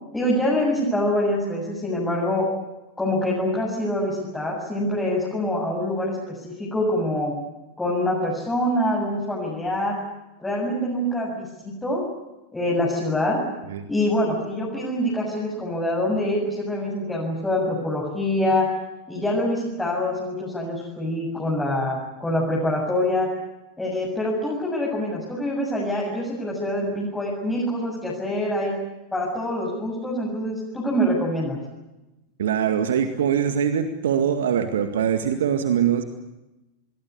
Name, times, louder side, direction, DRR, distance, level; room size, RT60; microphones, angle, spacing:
voice 1, 0.1-2.5 3.0-7.3 7.8-10.0 10.4-12.0 12.5-13.4 13.9-18.7 19.1-23.3 23.8-28.7 29.1-31.6, left 1 dB, 10° left, -4 dB, 7.7 m, -25 dB
voice 2, 32.4-36.0, right 8 dB, 60° right, 8 dB, 2.0 m, -22 dB
27.0 x 22.0 x 8.3 m, 1.0 s
figure-of-eight pair, 90°, 0 cm